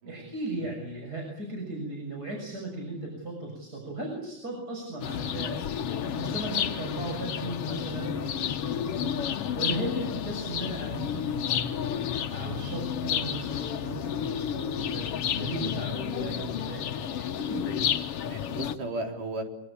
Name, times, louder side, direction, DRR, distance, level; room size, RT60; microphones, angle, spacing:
voice 1, 0.0-8.4 8.7-11.8 12.3-15.1 15.4-17.9, right 2 dB, 30° right, 0 dB, 7.2 m, -37 dB
sound 1, 5.0-18.7, left 9 dB, 55° left, 1.9 m, -31 dB
voice 2, 7.9-8.3 14.5-14.6 18.2-19.4, right 2 dB, 85° right, 2 dB, 5.7 m, -36 dB
25.0 x 24.5 x 8.7 m, 0.80 s
omnidirectional pair, 3.6 m